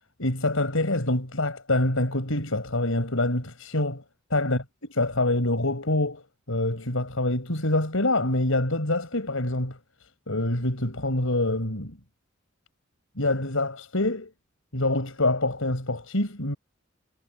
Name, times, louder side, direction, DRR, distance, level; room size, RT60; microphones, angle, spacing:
voice 1, 0.2-4.0 4.3-6.2 6.5-9.8 10.3-12.0 13.2-14.3 14.7-16.6, left 2 dB, 80° left, 5.4 m, -26 dB
head